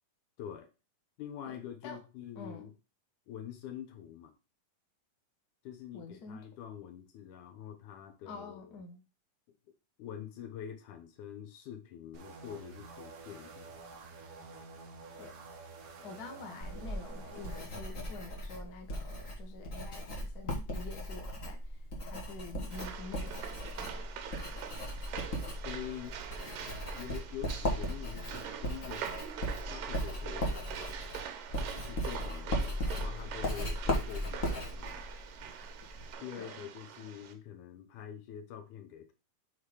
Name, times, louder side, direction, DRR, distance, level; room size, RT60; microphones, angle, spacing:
voice 1, 0.4-0.7 1.2-2.7 3.3-4.3 5.6-8.8 10.0-13.8 25.6-26.2 26.9-29.1 29.4-31.0 31.6-35.0 36.2-39.1, left 9 dB, 70° left, 2.4 m, -46 dB
voice 2, 1.4-2.0 2.3-2.7 5.9-6.4 8.3-9.0 15.2-15.4 16.0-24.2 24.5-24.6 36.4-36.6, left 3 dB, 90° left, 0.8 m, -48 dB
sound 1, 12.1-17.7, right 4 dB, 60° right, 1.6 m, -49 dB
Writing, 16.6-36.1, equal, 50° left, 0.9 m, -37 dB
sound 2, 22.7-37.3, right 8 dB, 75° right, 2.5 m, -44 dB
6.5 x 4.0 x 4.8 m
omnidirectional pair, 4.0 m